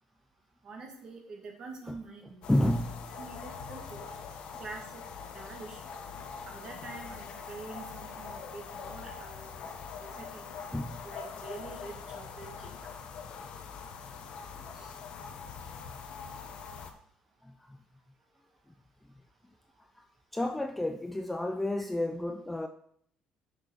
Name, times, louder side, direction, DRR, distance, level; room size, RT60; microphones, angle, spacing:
voice 1, 0.6-2.4 3.1-4.0 4.6-5.0 5.3-5.8 6.5-9.6 10.0-10.5 11.0-12.7 14.7-14.9 21.8-21.9, right 3 dB, 30° right, 2 dB, 1.9 m, -46 dB
sound 1, 2.4-16.9, left 6 dB, 45° left, 1.0 m, -43 dB
voice 2, 2.5-3.1 10.7-11.1 17.4-17.8 20.0-20.1 20.3-22.7, left 1 dB, 5° left, 6 dB, 0.3 m, -31 dB
6.6 x 6.2 x 6.4 m, 0.66 s
cardioid pair, 175°, 2 cm